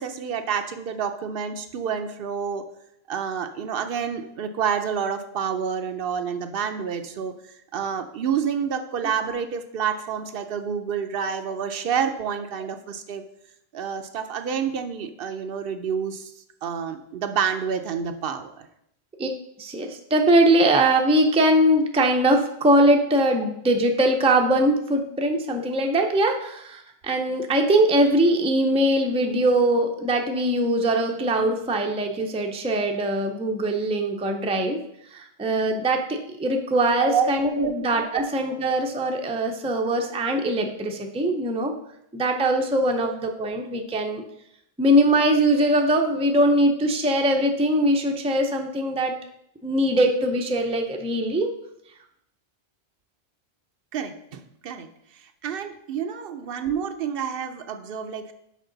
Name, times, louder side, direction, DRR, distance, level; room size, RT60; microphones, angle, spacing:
voice 1, 0.0-2.6 3.1-7.3 7.7-13.2 13.7-16.3 16.6-18.7 37.0-37.9 38.1-38.3 38.6-38.7 43.0-43.1 53.9-54.9 55.4-58.3, right 7 dB, 70° right, 8 dB, 0.7 m, -28 dB
voice 2, 19.6-34.8 35.1-41.7 42.1-44.2 44.8-49.2 49.6-51.5, right 1 dB, 10° right, 3 dB, 0.4 m, -21 dB
6.5 x 4.8 x 3.9 m, 0.76 s
omnidirectional pair, 1.1 m